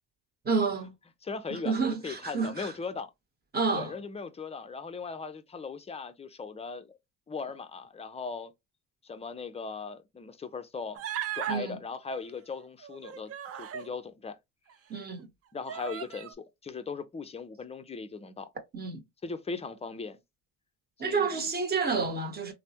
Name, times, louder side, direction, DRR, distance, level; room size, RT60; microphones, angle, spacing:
voice 1, 0.4-0.9 1.5-2.7 3.5-3.9 11.5-11.8 14.9-15.3 18.7-19.0 21.0-22.5, right 4 dB, 25° right, 1.0 m, -29 dB
voice 2, 1.2-3.1 3.7-6.9 7.3-8.5 9.0-11.0 11.3-13.3 13.6-14.4 15.5-18.5 19.2-20.2 21.0-21.5, left 4 dB, 15° left, 0.4 m, -38 dB
Human voice, 11.0-11.6 12.8-13.9 14.7-14.8 15.7-16.3, right 10 dB, 40° right, 0.4 m, -36 dB
3.2 x 2.1 x 2.8 m
cardioid pair, 95°, 36 cm